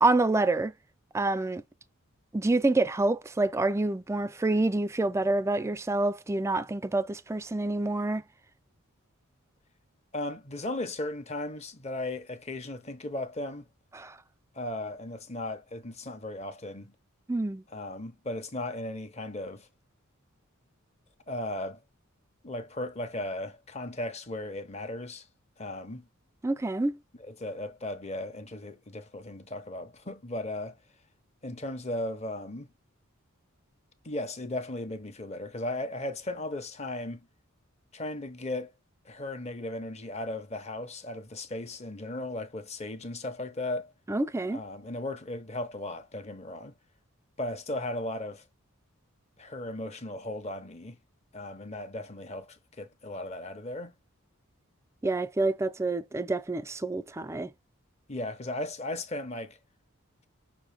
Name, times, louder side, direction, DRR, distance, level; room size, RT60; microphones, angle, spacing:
voice 1, 0.0-0.7 1.1-1.6 2.3-8.2 13.9-14.2 17.3-17.6 26.4-27.0 44.1-44.6 55.0-57.5, right 2 dB, 15° right, 0.3 m, -27 dB
voice 2, 10.1-13.7 14.5-16.9 17.7-19.7 21.3-21.8 22.4-25.3 25.6-26.1 27.2-30.8 31.4-32.7 34.0-37.3 37.9-38.7 39.0-43.9 44.5-46.7 47.4-48.4 49.4-51.0 51.3-54.0 58.1-59.6, left 1 dB, 30° left, 0.8 m, -36 dB
6.1 x 2.2 x 3.4 m
head